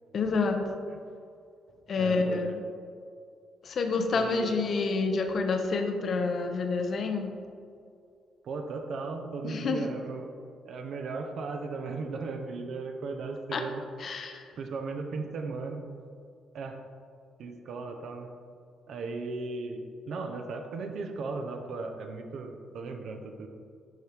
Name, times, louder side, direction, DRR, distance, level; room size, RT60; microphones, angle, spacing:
voice 1, 0.1-0.6 1.9-2.6 3.6-7.3 9.4-9.8 13.5-13.6 14.0-14.4, left 4 dB, 55° left, 5 dB, 0.8 m, -28 dB
voice 2, 1.9-2.6 4.1-4.6 8.4-10.3 10.6-13.8 14.6-15.8 16.5-16.8 17.4-18.3 18.9-23.5, right 3 dB, 65° right, 4 dB, 0.8 m, -36 dB
10.5 x 4.6 x 3.5 m, 2.4 s
cardioid pair, 90°, 0 cm